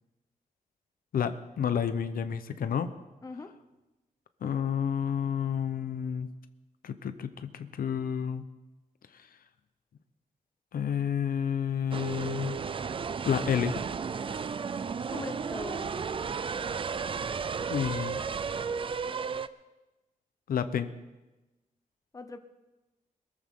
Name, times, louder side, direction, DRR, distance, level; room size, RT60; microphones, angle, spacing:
voice 1, 1.1-2.9 4.4-6.3 6.8-8.4 10.7-12.6 13.3-13.7 17.7-18.2 20.5-20.9, left 8 dB, 90° left, 11 dB, 0.8 m, -30 dB
sound 1, 11.9-19.5, right 6 dB, 35° right, 0.4 m, -33 dB
voice 2, 15.1-15.9 22.1-22.4, left 3 dB, 25° left, 8 dB, 0.9 m, -40 dB
22.0 x 14.0 x 3.7 m, 1.1 s
wide cardioid pair, 145°, 15 cm